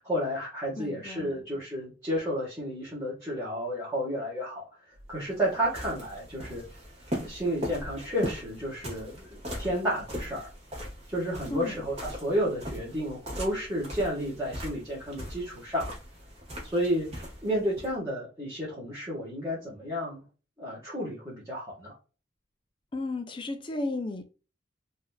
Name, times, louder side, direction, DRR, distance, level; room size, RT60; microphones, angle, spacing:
voice 1, 0.0-4.7 5.1-6.6 7.2-10.5 11.1-15.9 16.6-17.1 17.4-20.2 20.6-21.9, equal, 15° right, 1.4 m, -31 dB
voice 2, 0.8-1.3 11.5-11.8 22.9-24.2, left 2 dB, 25° left, 0.4 m, -33 dB
sound 1, 5.0-17.9, equal, 35° right, 1.6 m, -40 dB
4.0 x 2.7 x 2.3 m
head